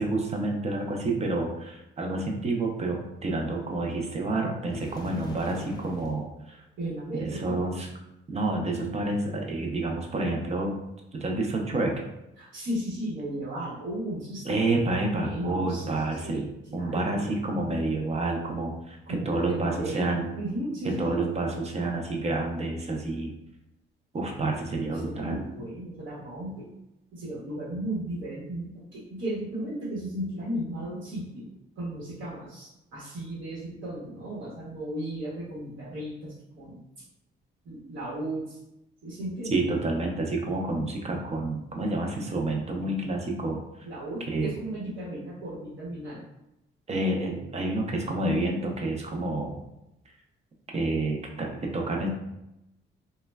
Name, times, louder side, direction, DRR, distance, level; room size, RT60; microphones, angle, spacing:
voice 1, 0.0-6.6 7.1-7.9 8.3-10.7 11.1-12.0 14.4-16.4 16.7-20.3 20.8-23.3 24.1-25.4 39.5-43.6 44.3-44.5 46.9-49.6 50.7-52.1, right 2 dB, 35° right, 1 dB, 0.5 m, -29 dB
sound 1, 4.7-6.2, left 1 dB, 20° left, 0.5 m, -41 dB
voice 2, 6.8-7.8 12.4-14.8 15.1-16.4 16.7-17.3 19.1-21.2 24.9-26.6 27.1-31.5 31.8-36.8 37.6-38.6 39.0-39.6 43.8-46.2, right 1 dB, 75° right, -7 dB, 1.0 m, -35 dB
3.0 x 2.2 x 2.2 m, 0.88 s
cardioid pair, 90°, 20 cm